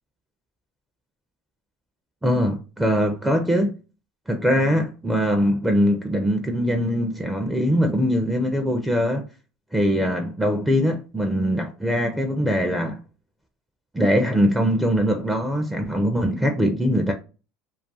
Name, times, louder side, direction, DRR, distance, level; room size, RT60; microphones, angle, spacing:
voice 1, 2.2-3.7 4.3-9.3 9.7-13.0 13.9-17.1, equal, 5° right, 0.4 m, -22 dB
2.4 x 2.3 x 2.6 m
supercardioid pair, 130°, 0 cm